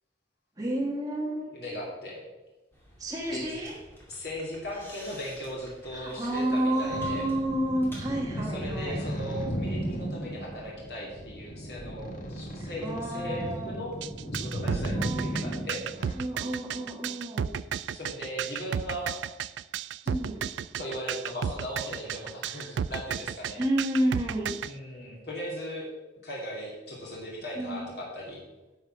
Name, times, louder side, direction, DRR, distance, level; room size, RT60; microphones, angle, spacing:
voice 1, 0.6-1.6 3.0-3.8 5.9-9.0 12.6-13.7 14.9-15.6 16.1-17.5 20.1-20.5 23.6-24.6 27.5-27.9, right 1 dB, 20° right, -3 dB, 1.3 m, -30 dB
voice 2, 1.5-2.2 3.3-3.5 4.1-7.2 8.4-13.9 14.3-15.8 17.9-19.2 20.8-23.6 24.7-25.9 26.2-28.4, equal, 65° left, -3 dB, 2.6 m, -38 dB
sound 1, 2.7-9.1, equal, 15° left, 2.2 m, -51 dB
sound 2, 6.9-16.1, equal, 45° left, 1.4 m, -35 dB
sound 3, 14.0-24.7, right 8 dB, 85° right, 0.3 m, -33 dB
10.5 x 5.7 x 6.2 m, 1.1 s
head